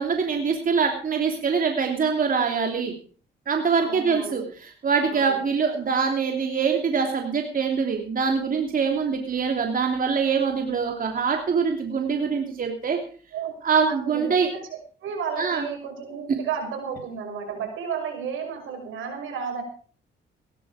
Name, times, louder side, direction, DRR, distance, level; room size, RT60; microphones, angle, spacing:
voice 1, 0.0-2.9 3.5-13.0 13.6-14.5 15.4-15.6 16.3-16.4, right 5 dB, 45° right, 3 dB, 3.0 m, -24 dB
voice 2, 3.7-4.5 5.1-5.4 13.3-13.5 13.8-19.6, right 6 dB, 85° right, 3 dB, 6.3 m, -33 dB
17.5 x 12.0 x 5.0 m, 0.42 s
cardioid pair, 90°, 20 cm